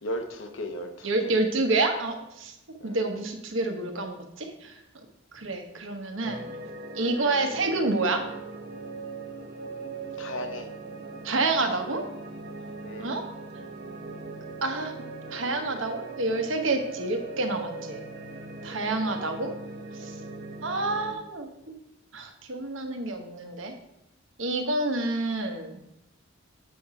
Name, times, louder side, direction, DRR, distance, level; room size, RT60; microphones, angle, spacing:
voice 1, 0.0-1.3 2.8-3.2 10.2-10.7 12.8-13.1 18.7-18.9, left 1 dB, 70° left, 6 dB, 1.0 m, -36 dB
voice 2, 1.0-2.5 2.8-4.7 5.3-6.4 6.9-8.2 11.2-12.0 13.0-13.2 14.6-14.9 15.3-18.0 18.6-19.5 20.0-20.1 20.6-21.5 22.1-23.7 24.4-25.9, right 2 dB, 70° right, 5 dB, 1.2 m, -28 dB
sound 1, 6.2-21.1, right 3 dB, 50° right, 1.0 m, -40 dB
7.6 x 5.8 x 4.8 m, 0.85 s
head